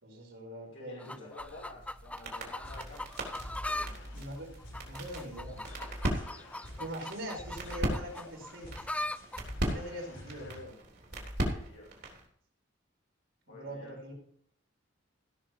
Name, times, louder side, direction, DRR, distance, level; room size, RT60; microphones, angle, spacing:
voice 1, 0.0-1.3 3.8-4.5 4.8-5.6 6.8-8.9 9.6-10.7 13.5-14.1, equal, 75° right, -2 dB, 5.0 m, -42 dB
voice 2, 0.6-3.1 3.5-4.0 11.4-11.9 13.5-14.1, left 2 dB, 90° left, -3 dB, 2.6 m, -51 dB
sound 1, 1.0-3.9 4.2-9.4 10.2-10.3, left 1 dB, 5° left, 0.4 m, -40 dB
sound 2, 1.4-12.3, right 1 dB, 60° right, 3.4 m, -39 dB
sound 3, 2.6-10.6, left 1 dB, 70° left, 4.8 m, -51 dB
16.0 x 6.4 x 4.8 m, 0.64 s
head